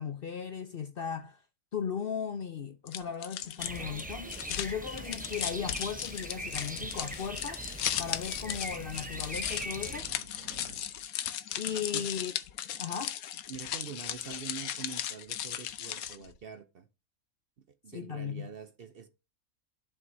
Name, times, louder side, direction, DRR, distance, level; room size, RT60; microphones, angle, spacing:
voice 1, 0.0-1.4 1.7-7.6 8.0-10.1 11.6-12.3 12.8-13.1 17.9-18.5, left 7 dB, 55° left, 0.7 m, -37 dB
sound 1, 2.9-16.3, left 10 dB, 90° left, 1.2 m, -37 dB
sound 2, 3.6-10.0, right 1 dB, 10° right, 0.5 m, -41 dB
Subway metro underground, 3.7-11.2, right 4 dB, 75° right, 1.6 m, -53 dB
voice 2, 13.5-16.9 17.8-19.1, right 6 dB, 55° right, 0.8 m, -44 dB
11.0 x 6.1 x 2.7 m
omnidirectional pair, 1.5 m